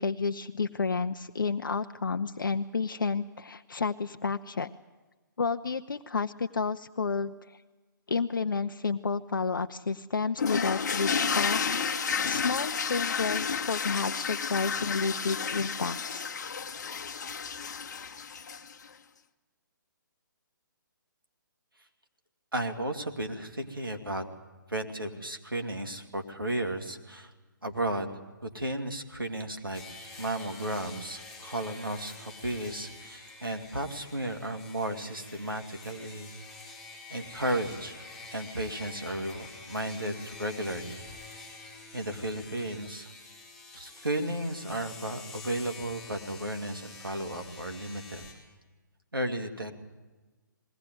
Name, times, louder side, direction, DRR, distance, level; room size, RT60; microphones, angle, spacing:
voice 1, 0.0-4.7 5.4-7.6 8.1-11.7 12.2-16.3, left 4 dB, 70° left, 8 dB, 0.6 m, -31 dB
sound 1, 10.4-18.8, left 6 dB, 55° left, 1.1 m, -31 dB
voice 2, 22.5-24.2 24.7-27.3 27.6-28.1 28.4-29.8 30.2-36.3 37.1-38.0 38.3-41.4 41.9-43.1 43.7-48.2 49.1-49.7, right 1 dB, 85° right, 5 dB, 2.4 m, -34 dB
sound 2, 29.7-48.3, left 3 dB, 5° left, 4.4 m, -47 dB
20.0 x 17.5 x 9.3 m, 1.3 s
figure-of-eight pair, 135°, 11 cm